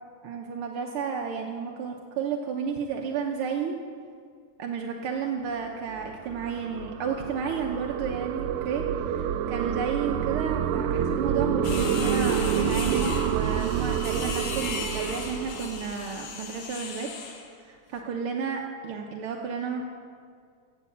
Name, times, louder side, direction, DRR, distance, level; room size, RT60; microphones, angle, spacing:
voice 1, 0.2-3.8 4.6-17.1 17.6-19.9, right 6 dB, 70° right, 1 dB, 1.3 m, -32 dB
sound 1, 5.7-16.3, right 8 dB, 90° right, 2.0 m, -28 dB
sound 2, 11.6-17.5, left 6 dB, 90° left, 2.8 m, -36 dB
15.5 x 7.1 x 8.5 m, 2.2 s
omnidirectional pair, 3.4 m